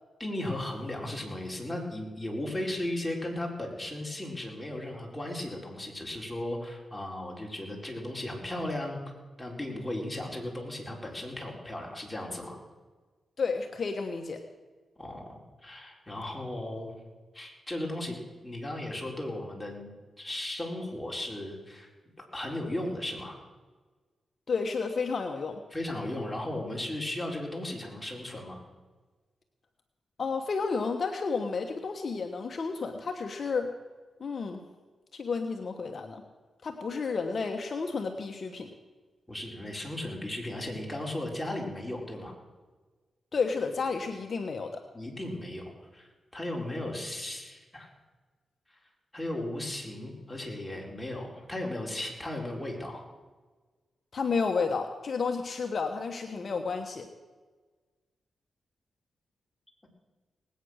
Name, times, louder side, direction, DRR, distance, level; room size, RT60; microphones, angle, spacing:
voice 1, 0.2-9.0 9.4-12.6 15.0-16.9 17.3-18.1 18.4-19.9 20.2-21.9 22.2-23.4 25.7-28.6 39.3-42.3 44.9-47.9 48.7-48.8 49.1-53.0, left 1 dB, 10° left, -1 dB, 4.5 m, -36 dB
voice 2, 13.4-14.4 24.5-25.6 30.2-33.7 34.2-34.6 35.1-36.2 36.6-38.7 43.3-44.8 54.1-57.1, left 4 dB, 55° left, 5 dB, 1.2 m, -31 dB
19.0 x 9.2 x 6.5 m, 1.3 s
cardioid pair, 60°, 0 cm